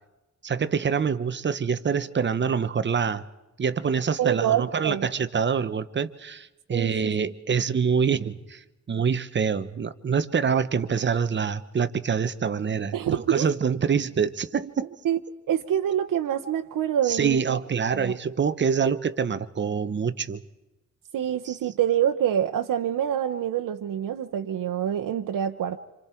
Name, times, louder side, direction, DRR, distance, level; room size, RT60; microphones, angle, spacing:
voice 1, 0.4-3.2 3.6-14.9 17.0-20.4 21.4-21.6, right 6 dB, 35° right, 12 dB, 0.8 m, -26 dB
voice 2, 4.2-5.1 6.7-7.1 12.9-13.5 15.0-15.2 15.5-17.6 17.9-18.1 21.1-25.8, right 10 dB, 80° right, 6 dB, 0.9 m, -26 dB
27.0 x 26.5 x 4.4 m, 1.0 s
wide cardioid pair, 150°, 32 cm